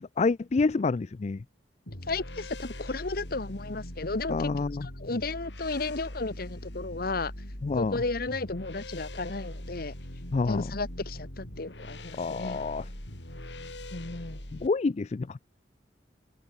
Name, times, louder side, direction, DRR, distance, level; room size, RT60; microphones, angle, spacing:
voice 1, 0.0-1.4 4.3-4.9 7.6-8.0 10.3-10.7 12.1-12.9 14.5-15.4, left 4 dB, 40° left, 0.4 m, -28 dB
sound 1, 1.9-14.7, left 1 dB, 85° left, 6.7 m, -41 dB
voice 2, 2.1-4.5 4.8-7.3 7.8-9.9 10.4-12.6 13.9-14.4, left 3 dB, 55° left, 1.3 m, -34 dB
open air
head